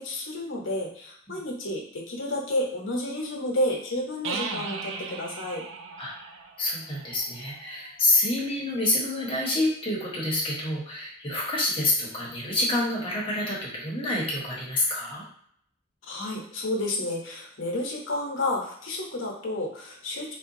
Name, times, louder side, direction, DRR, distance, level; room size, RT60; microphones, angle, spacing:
voice 1, 0.0-5.6 16.1-20.4, left 1 dB, 65° left, 0 dB, 0.8 m, -31 dB
sound 1, 4.2-7.9, right 5 dB, 55° right, 0.3 m, -37 dB
voice 2, 6.6-15.2, left 2 dB, 25° left, -4 dB, 0.8 m, -27 dB
3.8 x 2.2 x 2.6 m, 0.65 s
head